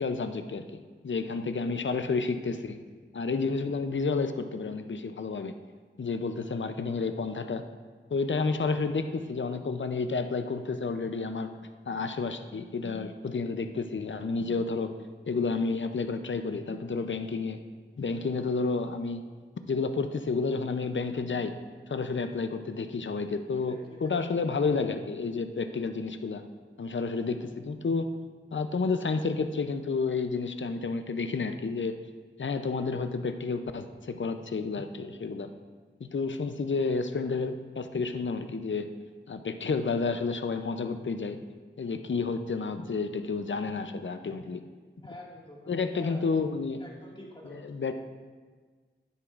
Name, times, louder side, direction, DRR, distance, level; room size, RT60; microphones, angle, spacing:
voice 1, 0.0-2.8 3.1-5.5 6.0-7.6 8.1-11.5 11.9-14.9 15.3-17.6 18.0-19.2 19.6-21.5 21.9-26.4 26.8-28.1 28.5-32.0 32.4-35.5 36.0-38.9 39.3-41.4 41.8-44.6 45.7-46.8 47.5-47.9, left 4 dB, 65° left, 8 dB, 0.5 m, -30 dB
voice 2, 23.5-24.2 44.2-44.5 45.0-46.2 46.8-47.6, left 1 dB, 25° left, -3 dB, 1.9 m, -47 dB
11.0 x 9.8 x 2.5 m, 1.5 s
wide cardioid pair, 55°, 21 cm